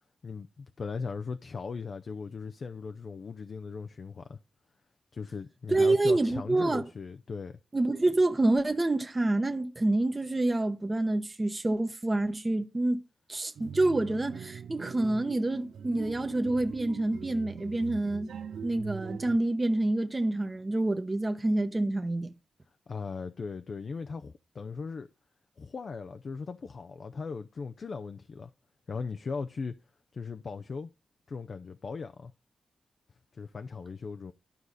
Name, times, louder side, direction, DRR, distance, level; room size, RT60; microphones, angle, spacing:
voice 1, 0.2-4.4 5.1-7.6 22.9-25.1 25.6-28.5 28.9-29.8 30.1-30.9 31.3-32.3 33.3-34.3, left 5 dB, 55° left, 0.5 m, -38 dB
voice 2, 5.7-6.8 7.7-13.0 13.3-18.3 18.6-22.3, right 2 dB, 25° right, 1.0 m, -27 dB
sound 1, 13.6-19.4, right 7 dB, 85° right, 0.5 m, -42 dB
12.0 x 4.8 x 4.0 m
cardioid pair, 75°, 0 cm